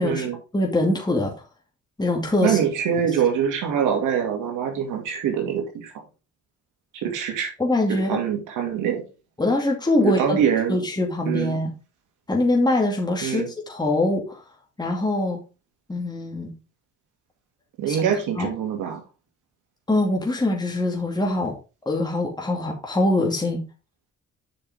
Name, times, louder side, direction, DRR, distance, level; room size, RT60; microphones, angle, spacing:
voice 1, 0.0-0.4 2.4-5.9 6.9-7.5 7.9-9.0 10.0-10.8 11.3-11.6 13.2-13.5 17.8-19.0, right 8 dB, 85° right, 3 dB, 2.5 m, -24 dB
voice 2, 0.5-1.3 2.0-2.6 7.6-8.2 9.4-10.4 10.7-11.7 12.3-14.4 14.8-15.4 15.9-16.5 17.9-18.0 18.4-18.5 19.9-21.5 21.9-23.6, left 2 dB, 15° left, 0 dB, 2.4 m, -23 dB
7.6 x 5.9 x 3.6 m, 0.30 s
cardioid pair, 90°, 30 cm